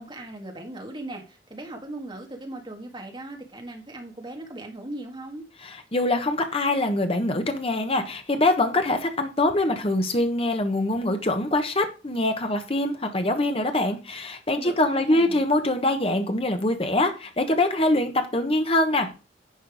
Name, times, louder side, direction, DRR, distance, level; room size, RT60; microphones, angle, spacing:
voice 1, 0.0-5.4 14.6-15.4, right 1 dB, 25° right, 2 dB, 1.9 m, -38 dB
voice 2, 5.6-19.1, left 2 dB, 30° left, 6 dB, 1.2 m, -24 dB
10.0 x 4.6 x 4.9 m, 0.32 s
head